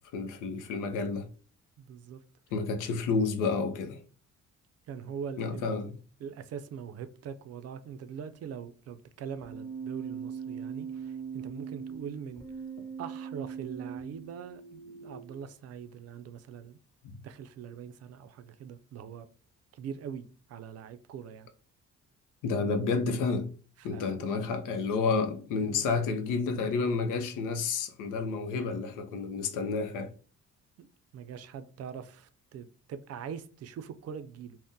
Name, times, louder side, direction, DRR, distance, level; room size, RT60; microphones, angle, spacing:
voice 1, 0.1-1.2 2.5-4.0 5.4-5.9 17.0-17.2 22.4-23.5 23.8-30.1, left 4 dB, 90° left, 0.6 m, -30 dB
voice 2, 1.8-2.2 4.9-5.7 6.2-12.5 13.0-16.8 17.2-19.3 19.7-21.5 23.8-24.2 25.6-25.9 30.8-34.6, right 7 dB, 55° right, 0.4 m, -42 dB
Keyboard (musical), 9.4-15.4, right 6 dB, 10° left, 1.1 m, -40 dB
2.6 x 2.1 x 3.6 m
cardioid pair, 90°, 30 cm